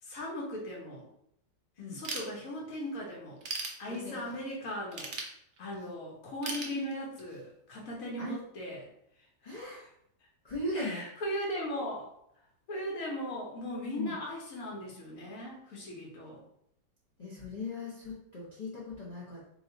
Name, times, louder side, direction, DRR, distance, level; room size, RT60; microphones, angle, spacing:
voice 1, 0.0-1.1 1.9-3.4 3.8-5.1 5.6-8.9 9.4-9.6 10.7-12.1 12.7-16.4, equal, 55° left, -2 dB, 1.4 m, -38 dB
Ratchet pawl / Tools, 2.0-2.8 3.2-4.4 4.9-5.9 6.4-7.4, right 3 dB, 75° right, 0.4 m, -38 dB
voice 2, 3.9-4.4 8.2-8.4 9.4-9.9 10.4-11.0 14.0-14.2 17.2-19.5, left 2 dB, 35° left, -7 dB, 0.7 m, -38 dB
3.1 x 3.1 x 3.8 m, 0.74 s
omnidirectional pair, 1.8 m